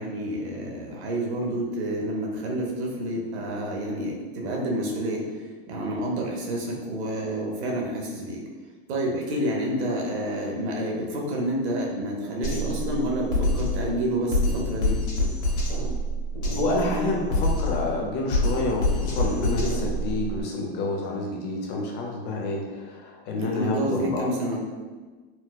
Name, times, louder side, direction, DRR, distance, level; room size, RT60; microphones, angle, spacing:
voice 1, 0.0-5.2 5.7-8.4 8.9-15.0 23.4-24.6, right 1 dB, 80° right, -1 dB, 1.0 m, -29 dB
Drum kit, 12.4-20.4, left 1 dB, 65° left, 1.3 m, -26 dB
voice 2, 16.5-24.3, left 2 dB, 35° left, 0 dB, 0.6 m, -28 dB
4.3 x 2.0 x 2.3 m, 1.4 s
supercardioid pair, 140°, 32 cm